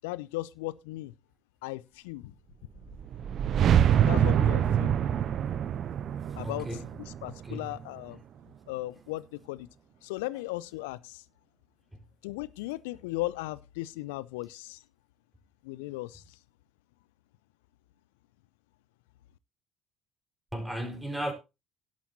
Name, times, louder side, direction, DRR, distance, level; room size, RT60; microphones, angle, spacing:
voice 1, 0.0-1.1 1.6-2.3 4.1-5.0 6.4-6.7 7.0-8.2 8.7-9.7 10.0-11.2 12.2-14.8 15.6-16.2, left 19 dB, 70° left, 0.5 m, -36 dB
sound 1, 2.8-8.0, right 9 dB, 45° right, 0.7 m, -26 dB
voice 2, 6.4-7.0 7.4-7.7 20.5-21.3, right 1 dB, 5° right, 4.5 m, -35 dB
17.0 x 8.4 x 2.8 m
figure-of-eight pair, 55°, 0 cm